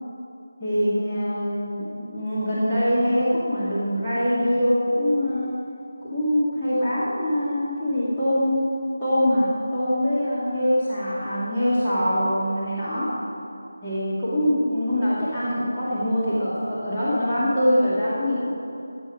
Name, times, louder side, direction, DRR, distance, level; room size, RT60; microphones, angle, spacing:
voice 1, 0.6-5.5 6.1-8.6 9.0-13.1 13.8-18.5, equal, 5° left, -17 dB, 2.4 m, -23 dB
16.0 x 8.4 x 5.0 m, 2.6 s
figure-of-eight pair, 165°, 0 cm